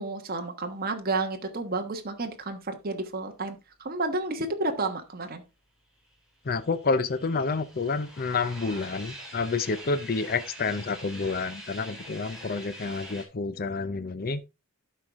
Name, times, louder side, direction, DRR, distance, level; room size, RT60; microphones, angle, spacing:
voice 1, 0.0-5.4, right 2 dB, 45° right, 1.3 m, -31 dB
sound 1, 6.1-13.3, equal, 5° right, 2.9 m, -44 dB
voice 2, 6.5-14.4, left 4 dB, 45° left, 0.6 m, -29 dB
12.5 x 4.7 x 3.6 m
head